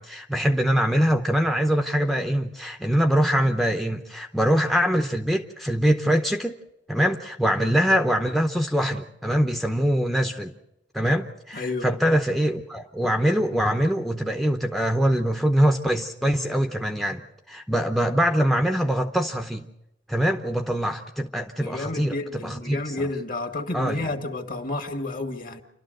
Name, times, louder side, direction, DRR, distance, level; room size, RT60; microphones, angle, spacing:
voice 1, 0.0-6.6 6.9-10.5 10.9-19.7 20.1-23.0 23.7-24.1, equal, ahead, 0.8 m, -23 dB
voice 2, 11.5-11.9 21.6-25.6, left 2 dB, 45° left, 2.1 m, -30 dB
29.0 x 12.5 x 7.9 m
head